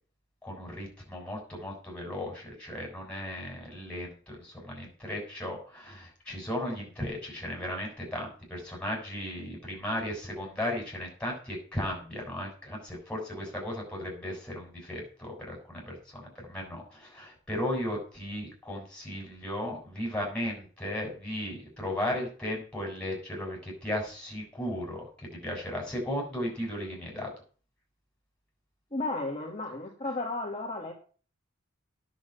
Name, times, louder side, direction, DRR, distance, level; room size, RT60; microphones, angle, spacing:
voice 1, 0.4-25.1 25.3-27.3, left 1 dB, 5° left, -1 dB, 7.1 m, -36 dB
voice 2, 28.9-30.9, left 2 dB, 30° left, -1 dB, 2.4 m, -33 dB
10.5 x 7.4 x 9.3 m, 0.40 s
head